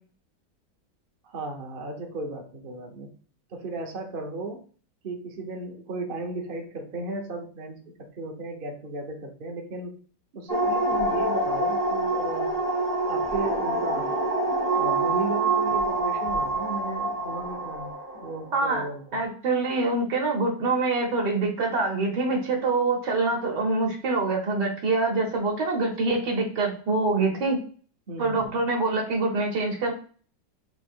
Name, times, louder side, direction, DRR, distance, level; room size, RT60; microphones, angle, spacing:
voice 1, 1.2-3.1 3.5-4.6 5.0-10.0 10.3-12.5 13.0-14.2 14.7-17.9 18.2-19.2 28.1-28.6, right 2 dB, 40° right, 2 dB, 0.9 m, -35 dB
sound 1, 10.5-18.6, right 2 dB, 15° right, 0.7 m, -26 dB
voice 2, 18.5-18.9 19.1-27.6 28.2-29.9, right 3 dB, 70° right, -1 dB, 1.7 m, -25 dB
4.2 x 2.9 x 4.4 m, 0.42 s
omnidirectional pair, 1.9 m